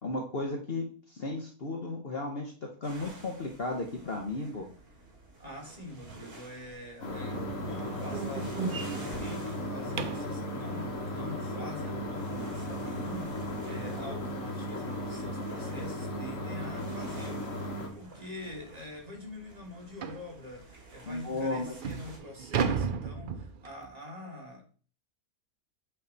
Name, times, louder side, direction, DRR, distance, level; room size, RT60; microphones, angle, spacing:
voice 1, 0.0-4.7 21.1-21.8, left 2 dB, 45° left, 2 dB, 1.0 m, -34 dB
sound 1, 2.8-22.2, right 2 dB, 45° right, 1.8 m, -51 dB
voice 2, 5.4-7.4 7.7-24.6, left 2 dB, 25° right, -1 dB, 1.7 m, -44 dB
sound 2, 7.0-17.9, equal, 65° left, 1.6 m, -36 dB
sound 3, 7.3-10.4 13.2-13.3 13.8-14.0 14.3-14.4 14.9-15.0 16.1-16.2 16.6-16.8 17.4-17.5 17.9-18.0 18.5-18.6 20.0-20.3 21.0-21.1 21.6-23.9, right 6 dB, 65° right, 0.5 m, -35 dB
8.2 x 3.5 x 3.9 m, 0.40 s
omnidirectional pair, 1.5 m